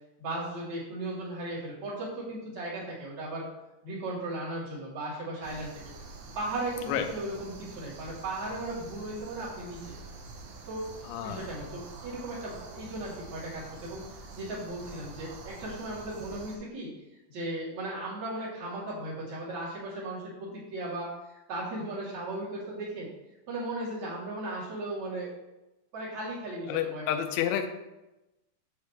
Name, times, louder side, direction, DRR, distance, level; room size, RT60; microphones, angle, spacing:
voice 1, 0.2-3.5 3.8-5.7 6.4-9.9 10.7-10.9 11.2-14.0 14.3-16.9 17.3-21.1 21.5-23.1 23.5-25.3 25.9-27.0, right 1 dB, 40° right, -7 dB, 3.8 m, -36 dB
sound 1, 5.4-16.6, right 3 dB, 75° right, 3.2 m, -46 dB
voice 2, 11.0-11.6 26.7-27.7, left 10 dB, 80° left, 6 dB, 2.3 m, -30 dB
8.8 x 8.1 x 3.3 m, 0.97 s
omnidirectional pair, 5.3 m